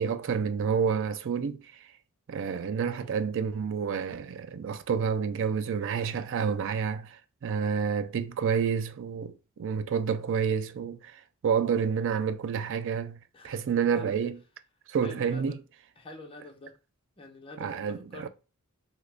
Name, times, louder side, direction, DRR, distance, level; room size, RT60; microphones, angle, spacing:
voice 1, 0.0-1.6 2.3-9.3 9.6-13.2 13.4-14.4 14.9-15.6 17.6-18.3, right 6 dB, 60° right, 0.4 m, -29 dB
voice 2, 2.9-3.2 13.3-14.2 15.0-15.6 16.0-16.8 17.2-18.3, left 2 dB, 25° left, 0.7 m, -47 dB
2.9 x 2.4 x 3.3 m
head